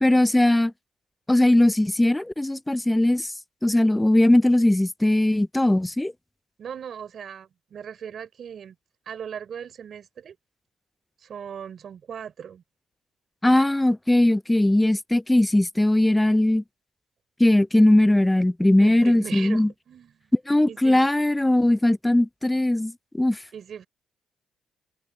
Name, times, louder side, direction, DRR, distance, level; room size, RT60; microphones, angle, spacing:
voice 1, 0.0-0.7 1.3-3.3 3.6-6.1 13.4-16.6 17.4-19.7 20.5-23.4, left 1 dB, 10° left, 0.4 m, -19 dB
voice 2, 6.6-8.8 9.1-10.4 11.2-12.6 18.8-20.3 20.7-21.1 23.5-23.9, right 8 dB, 60° right, 3.4 m, -38 dB
cardioid pair, 90°, 0 cm